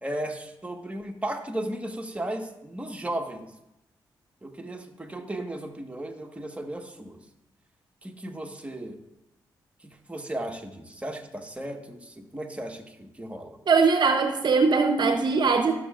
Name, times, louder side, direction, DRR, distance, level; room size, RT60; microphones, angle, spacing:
voice 1, 0.0-3.5 4.4-7.2 8.0-9.0 10.1-13.6, right 1 dB, 15° right, 3 dB, 1.3 m, -35 dB
voice 2, 13.7-15.7, right 4 dB, 60° right, 6 dB, 0.7 m, -21 dB
14.5 x 6.6 x 2.4 m, 0.90 s
supercardioid pair, 50°, 9 cm